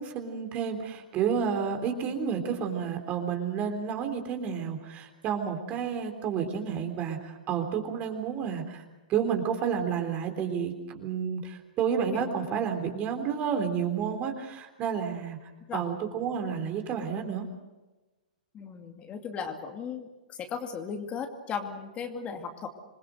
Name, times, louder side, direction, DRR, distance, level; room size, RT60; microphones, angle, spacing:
voice 1, 0.0-8.8 9.1-15.4 15.7-17.5, right 7 dB, 30° right, 5 dB, 3.6 m, -30 dB
voice 2, 18.5-22.7, left 6 dB, 25° left, 5 dB, 2.3 m, -37 dB
27.0 x 21.0 x 6.5 m, 1.1 s
hypercardioid pair, 115°, 5 cm